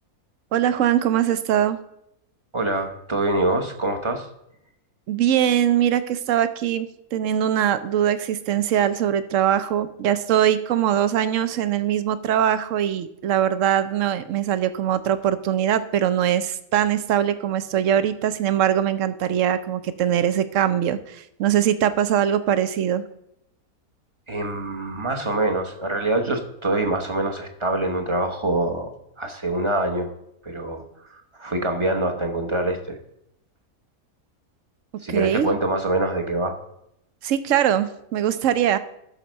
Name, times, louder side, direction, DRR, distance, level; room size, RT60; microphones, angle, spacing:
voice 1, 0.5-1.8 5.1-23.1 35.1-35.5 37.2-38.8, right 10 dB, 65° right, 12 dB, 1.0 m, -22 dB
voice 2, 2.5-4.3 24.3-28.9 29.2-30.1 30.4-30.8 31.1-33.0 35.0-36.6, right 2 dB, 25° right, 4 dB, 0.9 m, -25 dB
12.0 x 4.4 x 6.3 m, 0.78 s
omnidirectional pair, 1.6 m